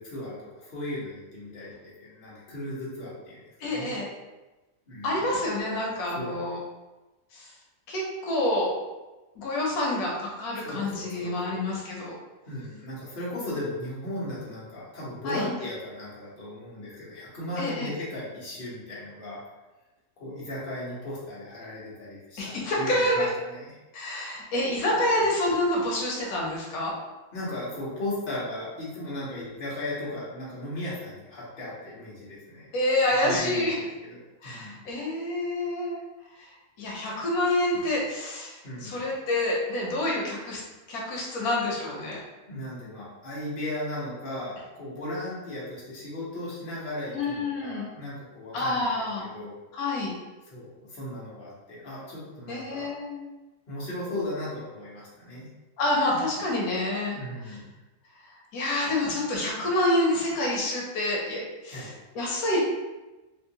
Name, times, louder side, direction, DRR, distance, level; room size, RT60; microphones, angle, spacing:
voice 1, 0.0-3.9 4.9-5.1 6.2-6.5 10.6-11.7 12.5-19.4 20.2-23.7 27.3-32.7 33.2-34.2 34.4-34.8 38.6-39.0 42.5-49.6 50.5-52.9 53.7-55.5 57.1-57.7 61.7-61.9, left 1 dB, 40° left, -8 dB, 1.2 m, -36 dB
voice 2, 3.6-4.1 5.0-6.6 7.3-7.5 7.9-8.7 9.3-12.1 15.2-15.5 17.6-17.9 22.4-23.2 23.9-26.9 32.7-33.7 34.4-36.0 36.4-36.5 36.8-40.6 40.9-42.2 47.1-47.9 48.5-49.3 49.7-50.1 52.5-53.3 55.8-57.2 57.4-57.6 58.2-62.6, left 1 dB, 85° left, -3 dB, 1.2 m, -28 dB
3.5 x 2.5 x 2.8 m, 1.1 s
omnidirectional pair, 1.5 m